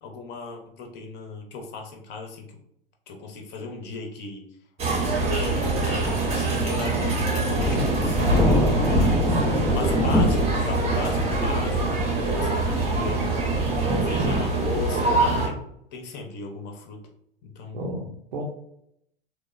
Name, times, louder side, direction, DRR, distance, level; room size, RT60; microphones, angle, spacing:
voice 1, 0.0-2.5 3.1-4.4 5.2-8.6 8.8-9.1 9.7-12.1 12.3-13.3 14.0-15.6 15.9-17.1 17.4-17.8, left 3 dB, 35° left, 2 dB, 0.6 m, -36 dB
sound 1, 4.8-15.5, right 2 dB, 20° right, 0.7 m, -24 dB
Thunder / Rain, 7.6-13.9, left 1 dB, 5° left, 0.3 m, -24 dB
voice 2, 8.8-9.4 17.7-18.4, left 1 dB, 75° right, -3 dB, 0.7 m, -31 dB
3.1 x 2.0 x 2.4 m, 0.72 s
figure-of-eight pair, 85°, 29 cm